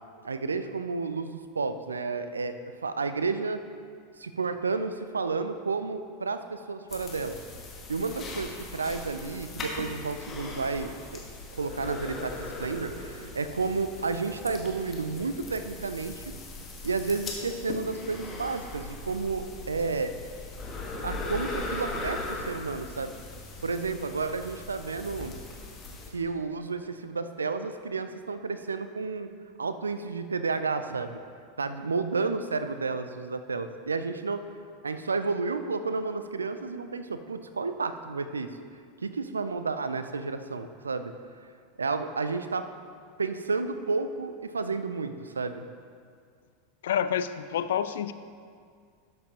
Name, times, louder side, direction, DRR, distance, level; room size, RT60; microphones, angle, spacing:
voice 1, 0.2-2.6 2.8-3.6 4.2-7.4 7.9-11.2 11.5-16.2 16.8-20.1 21.0-23.1 23.6-25.4 26.1-29.3 29.6-31.2 31.6-34.4 34.8-38.5 39.0-41.1 41.8-42.6 43.2-45.6, right 4 dB, 85° right, 10 dB, 0.4 m, -31 dB
sound 1, 6.9-26.1, left 2 dB, 30° left, 1.5 m, -39 dB
voice 2, 46.8-48.1, left 9 dB, 70° left, 12 dB, 0.3 m, -28 dB
12.0 x 7.6 x 2.9 m, 2.1 s
figure-of-eight pair, 85°, 0 cm